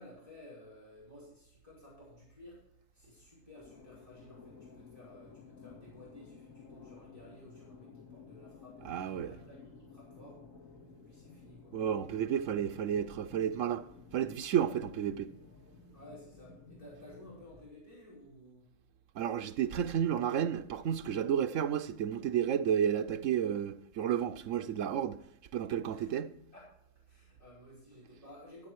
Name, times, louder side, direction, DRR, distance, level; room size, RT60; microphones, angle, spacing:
voice 1, 0.0-2.6 2.9-10.4 11.1-11.7 15.9-18.7 25.9-26.1 26.5-26.7 27.1-28.7, left 1 dB, 25° left, 5.7 m, -54 dB
sound 1, 3.6-17.7, left 4 dB, 85° left, 2.7 m, -54 dB
voice 2, 8.9-9.4 11.7-13.8 14.1-15.3 19.2-25.2 25.5-26.3, right 9 dB, 80° right, 1.1 m, -31 dB
13.0 x 9.9 x 4.6 m
omnidirectional pair, 1.3 m